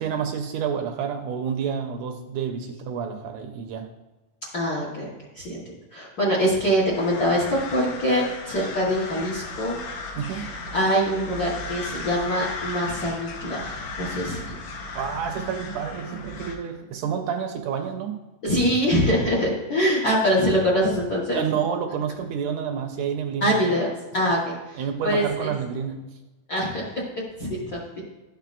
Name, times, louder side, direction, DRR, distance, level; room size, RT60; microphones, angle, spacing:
voice 1, 0.0-3.9 10.2-10.5 14.9-18.2 21.3-23.6 24.8-26.0, right 7 dB, 80° right, 5 dB, 1.7 m, -29 dB
voice 2, 4.5-5.6 5.9-9.8 10.3-14.5 18.4-21.4 23.4-23.9 24.1-25.5 26.5-27.0 27.4-27.8, equal, 45° left, -5 dB, 1.2 m, -24 dB
sound 1, 6.9-16.6, left 3 dB, 75° left, 2.3 m, -36 dB
12.5 x 5.8 x 2.5 m, 1.1 s
omnidirectional pair, 3.4 m